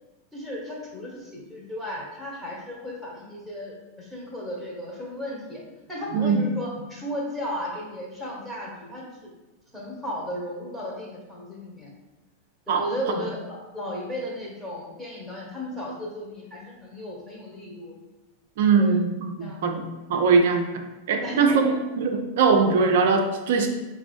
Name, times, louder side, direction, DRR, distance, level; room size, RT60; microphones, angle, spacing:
voice 1, 0.3-5.6 5.9-9.3 9.7-11.9 12.7-17.9 18.7-19.0 19.4-19.6 20.1-20.2 21.2-21.8, equal, ahead, -5 dB, 1.1 m, -35 dB
voice 2, 6.1-6.4 12.7-12.9 18.6-20.6 21.1-21.6 22.0-23.7, right 5 dB, 55° right, 5 dB, 0.4 m, -21 dB
5.4 x 2.4 x 2.4 m, 1.1 s
figure-of-eight pair, 90°, 0 cm